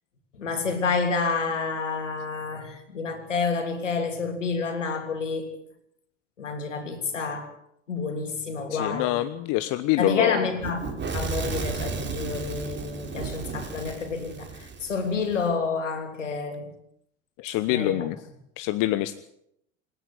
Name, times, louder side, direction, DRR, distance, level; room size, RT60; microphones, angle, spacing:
voice 1, 0.4-5.5 6.4-7.5 7.9-9.2 10.0-16.7 17.7-18.1, left 4 dB, 90° left, 6 dB, 3.4 m, -29 dB
voice 2, 8.7-10.5 17.4-18.2 18.6-19.1, left 15 dB, 60° left, 13 dB, 1.1 m, -25 dB
Fire / Explosion, 10.6-15.5, right 5 dB, 30° right, 4.4 m, -34 dB
26.5 x 10.0 x 9.5 m, 0.73 s
hypercardioid pair, 70°, 36 cm